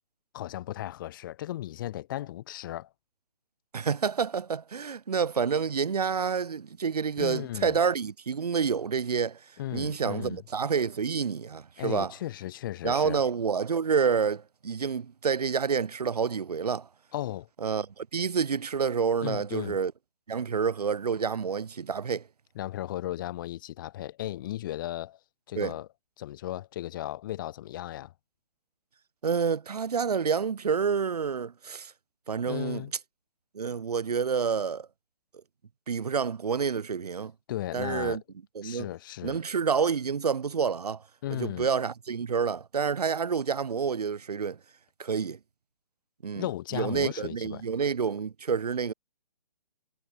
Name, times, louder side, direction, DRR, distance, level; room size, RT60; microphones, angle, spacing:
voice 1, 0.3-2.9 7.2-7.8 9.6-10.4 11.8-13.2 17.1-17.5 19.2-19.8 22.5-25.2 25.5-25.9 26.2-28.1 32.4-32.9 37.5-38.2 38.6-39.4 41.2-41.7 46.3-47.6, left 14 dB, 30° left, 3.4 m, -35 dB
voice 2, 3.7-9.4 9.7-12.1 12.8-16.9 17.6-19.9 20.3-22.3 25.6-25.7 29.2-31.9 32.3-32.9 33.5-34.9 35.9-37.3 37.7-38.2 38.5-38.9 39.2-41.0 41.3-44.6 45.0-45.4 46.2-46.4 46.7-48.9, right 6 dB, 75° right, 2.5 m, -28 dB
hypercardioid pair, 165°, 20 cm